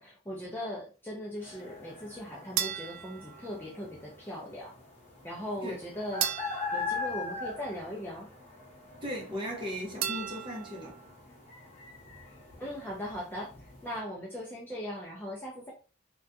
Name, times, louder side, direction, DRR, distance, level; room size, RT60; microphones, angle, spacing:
voice 1, 0.0-4.7 5.2-6.4 6.7-8.3 12.6-15.7, equal, 10° left, 0.4 m, -39 dB
sound 1, 1.4-14.0, left 4 dB, 30° left, 0.9 m, -42 dB
sound 2, 2.6-4.1 6.2-8.0 10.0-11.1, right 10 dB, 90° right, 0.3 m, -37 dB
voice 2, 9.0-11.0, equal, 25° right, 0.7 m, -37 dB
2.5 x 2.2 x 2.5 m
head